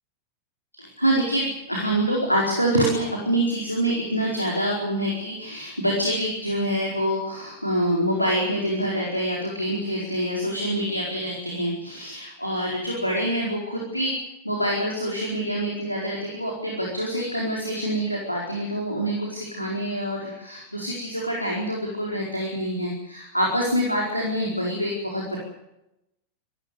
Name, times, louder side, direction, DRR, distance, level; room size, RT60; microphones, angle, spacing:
voice 1, 0.7-14.1 14.4-25.4, equal, 90° left, -2 dB, 4.5 m, -26 dB
26.5 x 14.0 x 9.6 m, 0.86 s
figure-of-eight pair, 90°, 0 cm